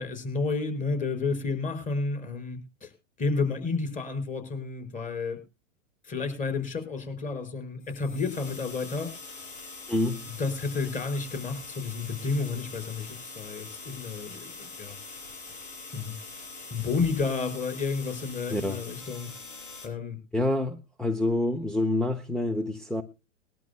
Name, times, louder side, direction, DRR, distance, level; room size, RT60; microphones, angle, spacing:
voice 1, 0.0-2.9 3.2-5.4 6.0-9.1 10.4-14.9 15.9-16.1 16.7-19.3 19.8-20.2, left 4 dB, 20° left, 5.0 m, -31 dB
sound 1, 7.8-19.9, left 3 dB, 80° left, 6.8 m, -43 dB
voice 2, 9.9-10.3 18.5-18.8 20.3-23.0, left 1 dB, ahead, 0.7 m, -27 dB
21.5 x 12.0 x 2.2 m
hypercardioid pair, 125°, 37 cm